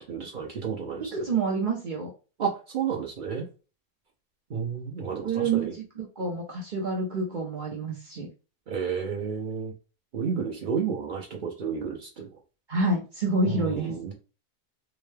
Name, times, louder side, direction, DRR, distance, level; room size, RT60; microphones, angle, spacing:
voice 1, 0.1-1.1 2.4-3.5 4.5-5.7 8.7-9.7 10.1-12.3 13.4-14.1, right 6 dB, 85° right, 0 dB, 0.4 m, -31 dB
voice 2, 1.1-2.1 5.2-8.3 12.7-13.9, right 3 dB, 45° right, -2 dB, 0.6 m, -28 dB
3.6 x 2.1 x 3.2 m, 0.34 s
omnidirectional pair, 1.7 m